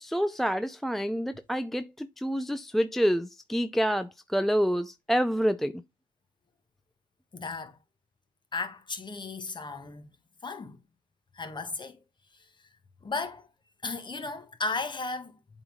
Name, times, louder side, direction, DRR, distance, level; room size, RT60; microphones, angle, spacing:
voice 1, 0.0-5.8, equal, ahead, 0.4 m, -28 dB
voice 2, 7.3-7.8 8.5-10.1 10.4-10.8 11.3-12.0 13.0-13.5 13.8-15.4, left 3 dB, 30° left, 1.5 m, -35 dB
7.9 x 3.9 x 3.6 m
cardioid pair, 90°, 17 cm